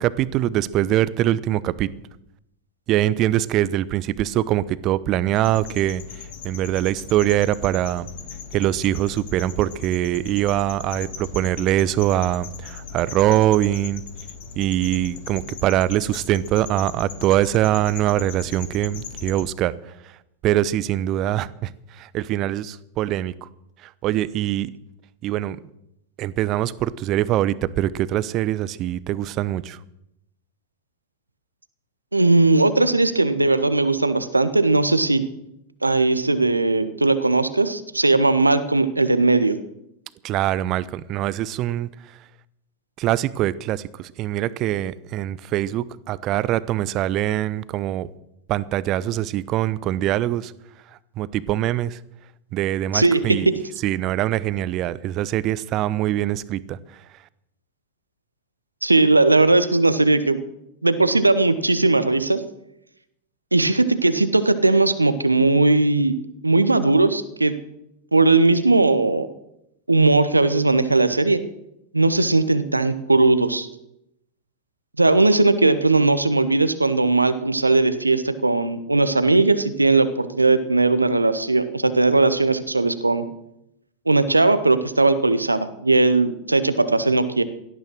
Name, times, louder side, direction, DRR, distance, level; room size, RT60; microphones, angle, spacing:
voice 1, 0.0-1.9 2.9-6.0 6.4-8.1 8.5-14.0 14.6-19.7 20.4-21.7 22.0-23.5 24.0-24.7 25.2-25.6 26.2-29.8 40.2-41.9 43.0-48.1 48.5-50.5 51.2-52.0 52.5-53.5 53.8-56.8, right 13 dB, 35° right, 18 dB, 0.8 m, -23 dB
sound 1, 5.4-19.4, left 7 dB, 55° left, 2.2 m, -38 dB
voice 2, 32.1-35.2 35.8-39.6 52.9-53.5 58.8-60.4 60.8-62.4 63.5-66.1 66.4-67.6 68.1-69.3 69.9-71.4 71.9-73.7 75.0-83.2 84.1-87.4, right 2 dB, 85° right, 12 dB, 1.2 m, -18 dB
17.5 x 13.0 x 6.3 m, 0.82 s
figure-of-eight pair, 90°, 0 cm